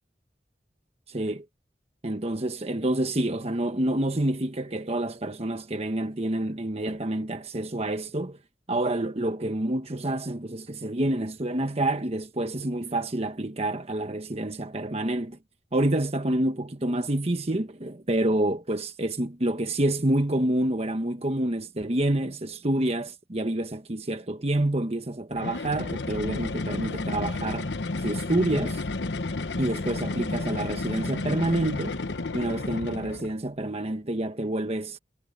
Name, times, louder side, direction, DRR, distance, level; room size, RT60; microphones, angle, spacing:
voice 1, 1.1-1.4 2.0-8.4 8.7-15.4 15.7-27.7 28.0-28.8 29.6-32.0 32.3-35.0, right 1 dB, 35° right, 1.2 m, -28 dB
sound 1, 25.3-33.4, left 2 dB, 75° left, 1.0 m, -31 dB
head